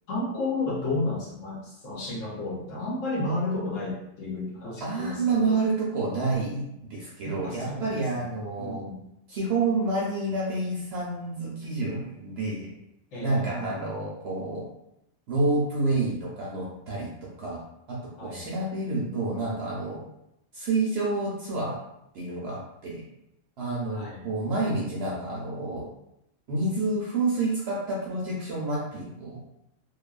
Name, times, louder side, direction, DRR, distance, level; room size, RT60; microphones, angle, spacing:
voice 1, 0.1-5.5 7.2-8.3 8.6-9.0 13.1-13.5 18.2-18.5 23.9-24.2, left 2 dB, 70° left, -4 dB, 1.1 m, -32 dB
voice 2, 4.8-6.6 6.9-8.9 9.3-12.7 13.2-14.6 15.3-17.6 17.9-20.0 20.5-21.8 22.1-23.0 23.6-25.9 26.5-29.5, right 3 dB, 65° right, -4 dB, 0.7 m, -29 dB
2.7 x 2.3 x 2.3 m, 0.81 s
omnidirectional pair, 1.4 m